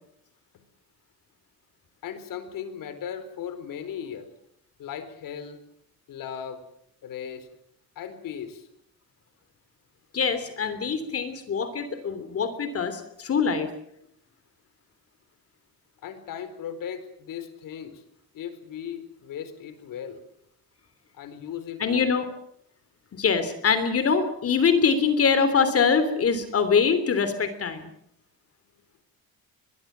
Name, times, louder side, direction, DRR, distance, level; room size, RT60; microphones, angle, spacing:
voice 1, 2.0-4.3 4.8-5.6 6.1-6.6 7.0-7.5 8.0-8.7 16.0-18.0 18.3-20.2 21.1-22.1, left 8 dB, 65° left, 11 dB, 4.3 m, -37 dB
voice 2, 10.1-13.7 21.8-22.3 23.2-27.9, left 5 dB, 40° left, 11 dB, 3.2 m, -23 dB
23.0 x 22.0 x 7.5 m, 0.74 s
cardioid pair, 130°, 36 cm